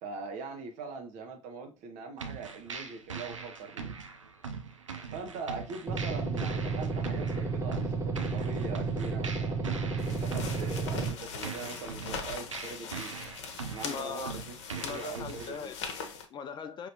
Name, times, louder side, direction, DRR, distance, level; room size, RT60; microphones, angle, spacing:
voice 1, 0.0-3.9 5.1-13.1 13.6-15.7, right 4 dB, 50° right, 1.1 m, -42 dB
sound 1, 2.2-15.6, right 5 dB, 85° right, 0.5 m, -42 dB
sound 2, 5.9-11.1, right 4 dB, 20° right, 0.8 m, -32 dB
sound 3, 10.0-16.3, left 6 dB, 65° left, 0.8 m, -41 dB
voice 2, 13.8-14.3 14.8-16.9, left 6 dB, 30° left, 0.4 m, -40 dB
5.2 x 2.9 x 2.8 m
figure-of-eight pair, 70°, 16 cm